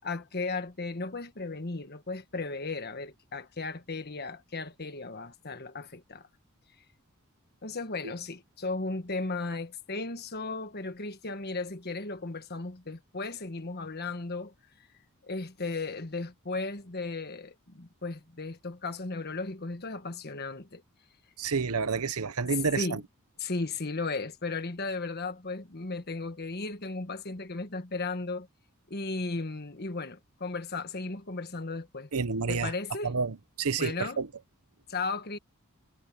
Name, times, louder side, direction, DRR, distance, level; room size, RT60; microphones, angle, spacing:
voice 1, 0.0-6.3 7.6-14.5 15.2-20.8 22.8-23.0 23.4-28.5 28.9-32.1 32.5-33.1 33.8-34.2 34.9-35.4, left 3 dB, 45° left, 1.5 m, -35 dB
voice 2, 21.4-23.0 32.1-32.7 33.0-34.3, right 5 dB, 80° right, 1.0 m, -29 dB
head